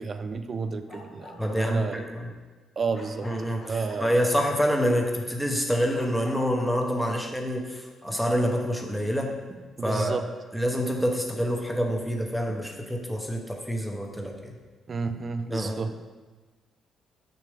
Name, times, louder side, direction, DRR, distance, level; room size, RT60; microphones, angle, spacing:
voice 1, 0.0-2.1 2.8-4.2 7.1-7.2 9.8-10.3 14.9-15.9, right 4 dB, 40° right, 9 dB, 0.5 m, -31 dB
Bark, 0.8-1.7 2.9-4.0 4.8-4.9 6.0-6.7, left 2 dB, 45° left, 1.8 m, -45 dB
voice 2, 1.4-2.3 3.2-10.2 10.5-14.6 15.5-15.9, equal, ahead, 1 dB, 0.9 m, -27 dB
6.7 x 6.1 x 3.5 m, 1.3 s
cardioid pair, 90°, 0 cm